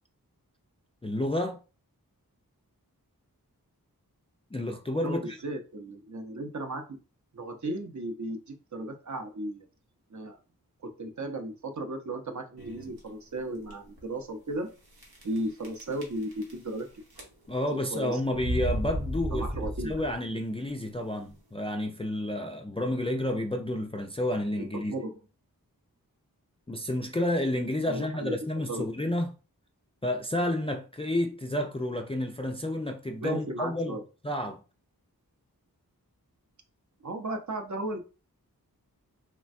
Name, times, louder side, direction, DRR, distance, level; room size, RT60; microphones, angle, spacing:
voice 1, 1.0-1.6 4.5-5.4 17.5-24.9 26.7-29.3 30.0-34.0 34.2-34.6, left 1 dB, 15° left, 0.3 m, -30 dB
voice 2, 5.0-7.0 7.3-9.7 10.1-10.4 10.8-14.7 15.2-16.9 17.7-18.2 19.3-20.0 24.7-25.2 27.9-28.4 28.7-28.9 33.2-34.0 37.0-38.0, right 1 dB, 50° right, 0.7 m, -35 dB
sound 1, 12.6-13.0 13.6-13.7 14.0-14.1 15.0-15.4 15.6-16.8 17.1-17.6 18.3-20.3, equal, 90° right, 0.9 m, -33 dB
3.2 x 2.2 x 2.5 m
wide cardioid pair, 45°, 36 cm